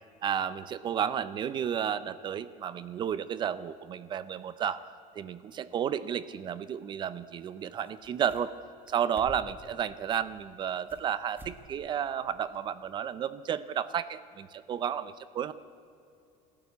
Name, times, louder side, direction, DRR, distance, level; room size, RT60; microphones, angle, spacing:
voice 1, 0.2-4.8 5.2-8.5 8.9-15.5, right 9 dB, 25° right, 15 dB, 0.5 m, -32 dB
sound 1, 7.4-7.5 7.7-8.6 8.9-9.7 10.2-11.1 11.3-11.6 11.9-12.0 12.5-12.6, right 2 dB, 10° right, 1.6 m, -49 dB
28.5 x 14.0 x 8.3 m, 2.6 s
cardioid pair, 170°, 17 cm